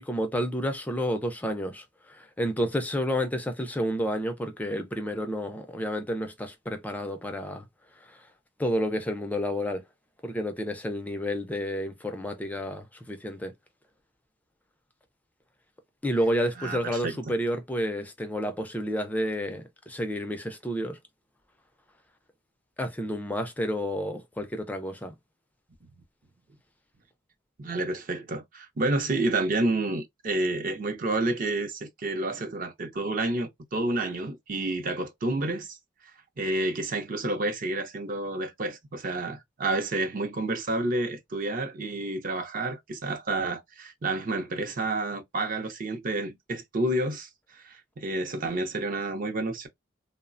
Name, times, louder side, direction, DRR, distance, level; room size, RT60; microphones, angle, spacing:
voice 1, 0.0-7.7 8.1-8.2 8.6-9.8 10.2-13.5 16.0-21.0 22.8-25.1, equal, 10° left, 0.4 m, -30 dB
voice 2, 16.6-17.1 27.6-35.8 36.4-49.7, right 2 dB, 45° right, 0.5 m, -29 dB
3.0 x 2.0 x 2.4 m
head